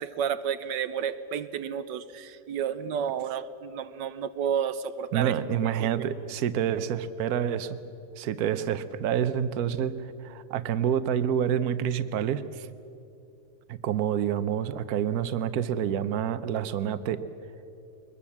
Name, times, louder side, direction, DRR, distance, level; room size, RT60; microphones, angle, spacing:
voice 1, 0.0-5.3 5.8-6.1, right 8 dB, 85° right, 12 dB, 1.4 m, -31 dB
voice 2, 5.1-7.8 8.2-12.7 13.7-17.2, right 9 dB, 60° right, 12 dB, 1.3 m, -28 dB
23.0 x 21.5 x 7.3 m, 2.7 s
omnidirectional pair, 1.9 m